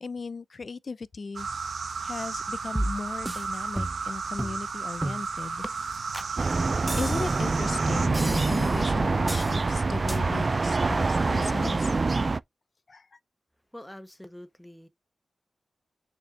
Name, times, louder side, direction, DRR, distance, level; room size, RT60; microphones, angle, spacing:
voice 1, 0.0-1.5 2.0-5.7 6.3-6.7 6.9-12.0 12.9-13.2, left 4 dB, 55° left, 0.5 m, -37 dB
sound 1, 1.3-8.1, right 5 dB, 75° right, 1.2 m, -34 dB
sound 2, 2.8-3.5 3.8-4.1 4.4-4.6 5.0-5.3 5.6-5.7 6.1-6.3 6.9-7.5 8.1-8.9 9.3-9.6 10.1-10.2, right 1 dB, 15° right, 0.8 m, -33 dB
sound 3, 6.4-12.4, right 3 dB, 45° right, 0.3 m, -25 dB
voice 2, 13.7-14.9, left 1 dB, 5° left, 1.1 m, -45 dB
6.5 x 6.4 x 2.4 m
cardioid pair, 60°, 0 cm